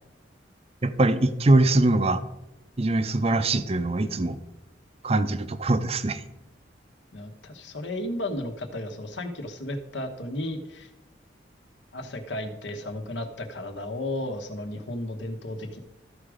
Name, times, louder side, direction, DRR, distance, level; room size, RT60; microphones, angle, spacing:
voice 1, 0.8-2.2 2.8-4.4 5.0-6.2, right 2 dB, 35° right, 11 dB, 0.6 m, -22 dB
voice 2, 7.1-10.9 11.9-15.8, left 1 dB, 75° left, 5 dB, 1.2 m, -34 dB
13.5 x 4.9 x 4.9 m, 0.94 s
head